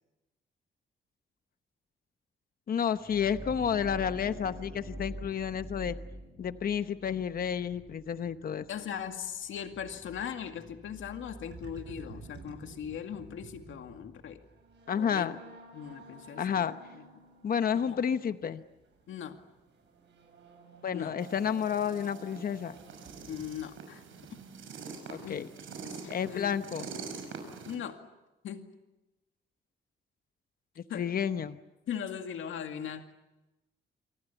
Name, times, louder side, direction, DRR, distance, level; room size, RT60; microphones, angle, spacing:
voice 1, 2.7-6.0 6.4-8.7 14.9-15.4 16.4-16.8 17.4-18.6 20.8-22.7 25.1-25.5 26.1-26.9 30.9-31.6, left 8 dB, 45° left, 11 dB, 1.0 m, -30 dB
sound 1, 2.8-14.5, equal, 10° right, 7.3 m, -47 dB
voice 2, 8.7-14.4 14.9-15.3 15.7-17.1 17.9-18.0 19.1-19.4 20.9-21.1 23.3-24.0 25.2-25.5 25.8-26.6 27.7-28.0 28.4-28.7 30.9-31.1 31.9-33.1, left 8 dB, 80° left, 6 dB, 2.2 m, -39 dB
sound 2, 11.5-23.6, right 4 dB, 65° right, 7.9 m, -52 dB
sound 3, 21.2-27.8, right 5 dB, 80° right, 6.2 m, -45 dB
27.5 x 25.0 x 7.2 m, 1.0 s
cardioid pair, 140°, 20 cm